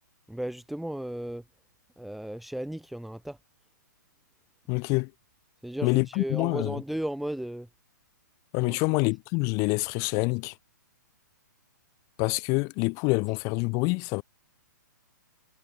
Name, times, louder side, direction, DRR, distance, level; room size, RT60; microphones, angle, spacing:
voice 1, 0.3-1.4 2.0-3.4 5.6-7.7 8.6-8.8, right 1 dB, ahead, 0.7 m, -35 dB
voice 2, 4.7-5.1 5.8-6.8 8.5-10.5 12.2-14.2, left 31 dB, 30° left, 2.2 m, -26 dB
hypercardioid pair, 150°, 10 cm